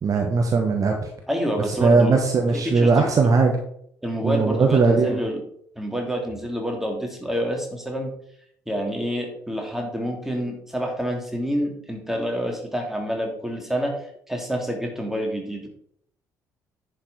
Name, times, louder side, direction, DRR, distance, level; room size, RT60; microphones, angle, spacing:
voice 1, 0.0-1.1 1.8-3.6 4.2-5.2, right 4 dB, 40° right, 3 dB, 1.3 m, -19 dB
voice 2, 1.3-2.2 2.5-3.1 4.0-5.4 5.8-8.1 8.7-15.7, equal, 5° right, 1 dB, 2.9 m, -28 dB
10.0 x 6.0 x 4.3 m, 0.67 s
figure-of-eight pair, 50°, 9 cm